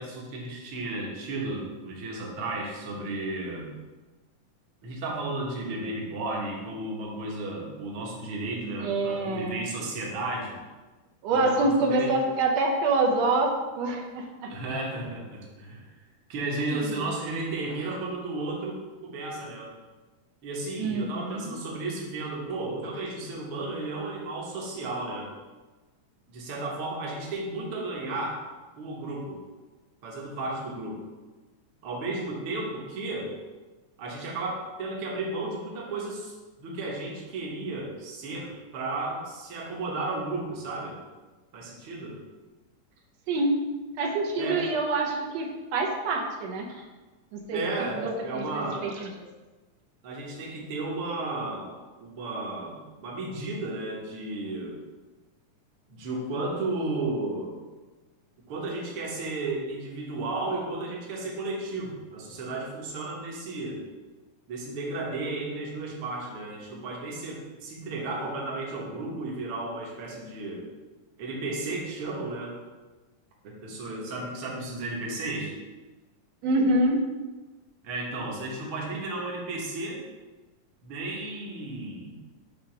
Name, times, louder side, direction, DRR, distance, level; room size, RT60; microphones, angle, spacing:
voice 1, 0.0-3.7 4.8-10.6 11.3-12.1 14.5-15.9 16.3-18.8 19.0-19.7 20.4-25.3 26.3-28.4 28.8-29.4 30.0-31.1 31.8-33.3 34.0-36.3 36.6-41.0 41.5-42.2 44.4-44.7 47.5-48.9 50.0-54.8 55.9-57.6 58.5-63.8 64.5-70.6 71.2-72.6 73.4-75.5 77.8-80.0 80.8-82.1, right 2 dB, 55° right, -2 dB, 1.7 m, -33 dB
voice 2, 8.8-9.7 11.2-14.2 16.6-17.1 20.8-21.6 43.3-43.6 44.0-46.7 47.3-47.6 47.9-48.1 48.4-49.1 76.4-77.0, right 2 dB, 70° right, 1 dB, 1.7 m, -26 dB
6.7 x 3.3 x 5.9 m, 1.2 s
omnidirectional pair, 3.6 m